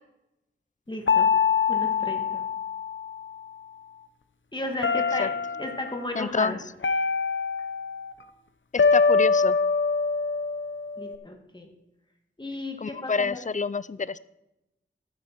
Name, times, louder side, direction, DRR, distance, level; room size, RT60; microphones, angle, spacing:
voice 1, 0.9-1.3 1.7-2.4 4.5-6.6 11.0-11.7 12.4-13.4, left 1 dB, 20° left, 2 dB, 1.8 m, -34 dB
sound 1, 1.1-3.4 4.8-5.8 6.8-8.1 8.8-11.2, left 5 dB, 70° left, 0.7 m, -24 dB
voice 2, 6.2-6.6 8.7-9.6 12.8-14.2, left 5 dB, 40° left, 18 dB, 0.4 m, -27 dB
12.0 x 9.6 x 4.5 m, 0.92 s
wide cardioid pair, 50°, 20 cm